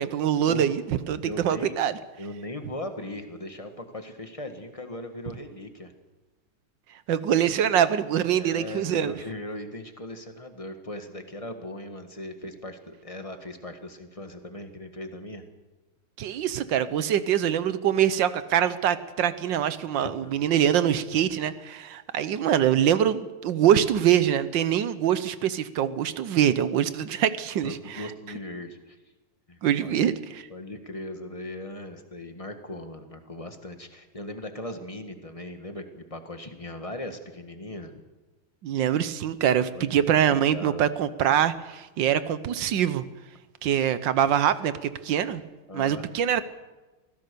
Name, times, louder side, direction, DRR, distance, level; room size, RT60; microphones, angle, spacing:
voice 1, 0.0-1.9 7.1-9.1 16.2-28.0 29.6-30.1 38.6-43.0 43.6-45.4 45.7-46.4, right 10 dB, 65° right, 14 dB, 1.4 m, -24 dB
voice 2, 1.2-1.8 2.2-5.9 8.4-15.4 20.0-20.4 27.6-29.0 29.5-30.1 30.5-38.0 39.7-40.9 45.7-46.1, left 1 dB, 20° left, 6 dB, 1.4 m, -39 dB
24.0 x 16.0 x 6.8 m, 1.2 s
omnidirectional pair, 2.4 m